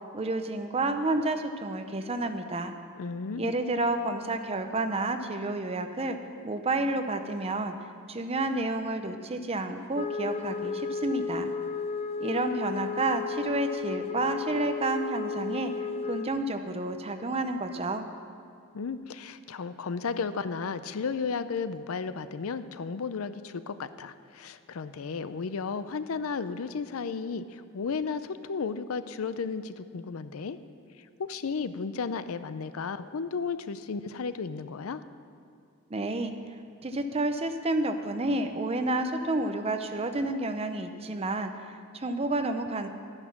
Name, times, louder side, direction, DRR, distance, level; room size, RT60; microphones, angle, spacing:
voice 1, 0.1-2.7 3.4-6.2 6.4-7.7 8.1-11.5 12.2-15.7 16.1-18.1 35.9-36.3 36.8-42.9, right 2 dB, 30° right, 7 dB, 0.7 m, -30 dB
voice 2, 3.0-3.5 18.7-30.6 31.0-35.0, left 5 dB, 80° left, 13 dB, 0.5 m, -34 dB
Wind instrument woodwind instrument, 9.9-16.4, left 6 dB, 30° left, 0.4 m, -33 dB
12.5 x 9.8 x 5.9 m, 2.4 s
head